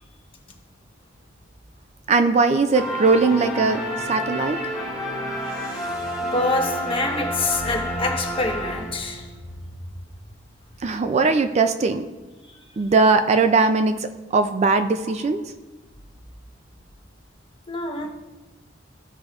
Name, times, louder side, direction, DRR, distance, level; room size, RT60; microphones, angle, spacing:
voice 1, 2.1-4.6 10.8-12.1 12.8-15.4, right 4 dB, 35° right, 0.4 m, -20 dB
sound 1, 2.7-9.3, equal, 5° right, 2.2 m, -29 dB
voice 2, 6.2-9.3 17.7-18.1, left 2 dB, 30° left, 1.1 m, -25 dB
14.5 x 5.0 x 2.4 m
head